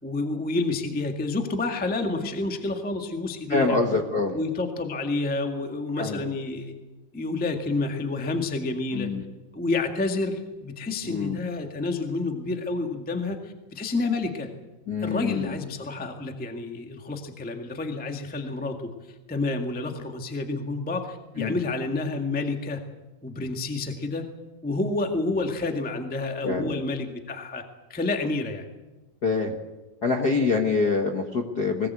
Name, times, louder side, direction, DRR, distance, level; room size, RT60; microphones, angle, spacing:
voice 1, 0.0-3.8 4.3-6.7 7.1-9.1 9.5-14.5 15.0-18.9 19.3-22.8 23.2-24.2 24.6-27.6 27.9-28.6, left 3 dB, 5° left, 5 dB, 0.9 m, -29 dB
voice 2, 3.5-4.4 6.0-6.2 8.9-9.2 11.0-11.4 14.9-15.6 21.4-21.5 26.4-26.8 29.2-29.5 30.0-31.9, left 4 dB, 45° left, 3 dB, 1.3 m, -25 dB
21.5 x 19.0 x 8.3 m, 1.1 s
omnidirectional pair, 3.8 m